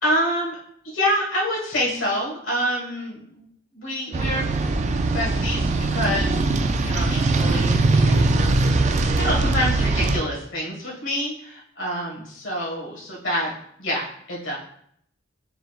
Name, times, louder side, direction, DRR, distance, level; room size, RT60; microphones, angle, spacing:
voice 1, 0.0-0.6 0.8-3.5 3.7-4.4 5.1-8.8 9.2-13.5 13.8-14.6, equal, 65° left, -3 dB, 1.6 m, -27 dB
sound 1, 4.1-10.2, right 2 dB, 35° right, 0.3 m, -21 dB
4.8 x 3.8 x 2.4 m, 0.68 s
head